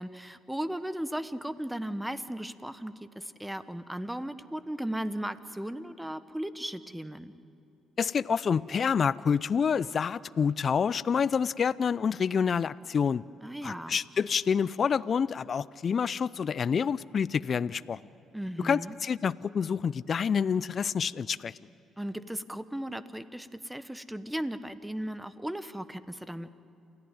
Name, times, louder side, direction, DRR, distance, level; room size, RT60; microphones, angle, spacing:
voice 1, 0.0-7.3 13.4-14.0 18.3-19.0 22.0-26.5, right 1 dB, 5° right, 13 dB, 1.2 m, -36 dB
voice 2, 8.0-13.2 13.6-18.0 18.6-21.5, left 6 dB, 50° left, 19 dB, 0.4 m, -28 dB
28.0 x 14.5 x 9.3 m, 2.9 s
hypercardioid pair, 55°, 0 cm